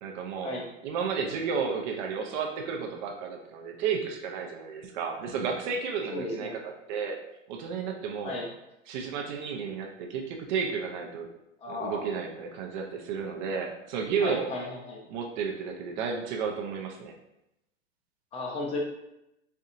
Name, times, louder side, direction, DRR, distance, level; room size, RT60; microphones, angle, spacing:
voice 1, 0.0-7.2 7.5-8.4 8.9-11.3 11.7-14.6 15.1-17.1, right 6 dB, 35° right, 2 dB, 0.5 m, -32 dB
voice 2, 6.1-6.6 8.2-8.5 11.6-12.1 14.2-15.0 18.3-18.8, left 2 dB, 15° left, -1 dB, 0.5 m, -34 dB
4.3 x 2.6 x 2.5 m, 0.87 s
hypercardioid pair, 125°, 39 cm